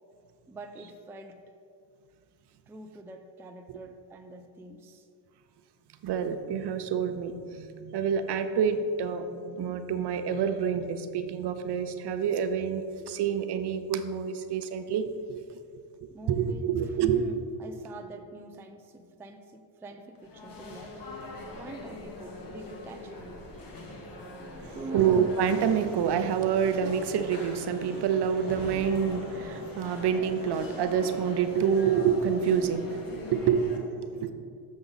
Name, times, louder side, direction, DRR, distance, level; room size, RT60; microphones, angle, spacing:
voice 1, 0.5-1.4 2.7-5.1 16.1-20.9 21.5-23.3 24.4-25.2, right 2 dB, 5° right, 5 dB, 0.3 m, -45 dB
voice 2, 6.0-15.4 16.3-17.2 24.6-34.3, right 7 dB, 55° right, 8 dB, 0.7 m, -27 dB
sound 1, 20.1-33.8, left 2 dB, 45° left, 1.2 m, -41 dB
6.8 x 5.2 x 4.0 m, 2.3 s
supercardioid pair, 70°, 49 cm